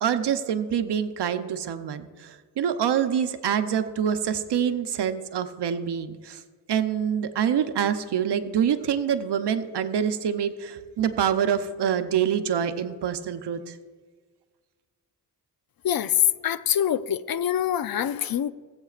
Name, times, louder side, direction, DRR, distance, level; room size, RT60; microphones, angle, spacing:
voice 1, 0.0-6.4 6.7-13.8, right 8 dB, 75° right, 9 dB, 0.8 m, -26 dB
voice 2, 15.8-18.5, left 10 dB, 60° left, 14 dB, 0.6 m, -24 dB
18.5 x 8.2 x 2.5 m, 1.5 s
cardioid pair, 60°, 41 cm